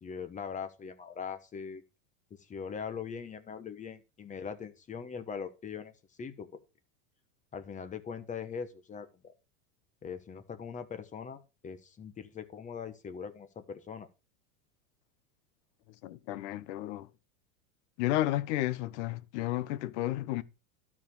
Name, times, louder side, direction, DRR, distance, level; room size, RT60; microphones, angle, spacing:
voice 1, 0.0-1.8 2.5-5.9 6.2-6.5 7.5-9.3 10.0-14.1, left 6 dB, 20° left, 1.1 m, -41 dB
voice 2, 16.0-17.1 18.0-20.4, left 15 dB, 60° left, 1.0 m, -32 dB
12.0 x 4.9 x 5.4 m
supercardioid pair, 140°, 41 cm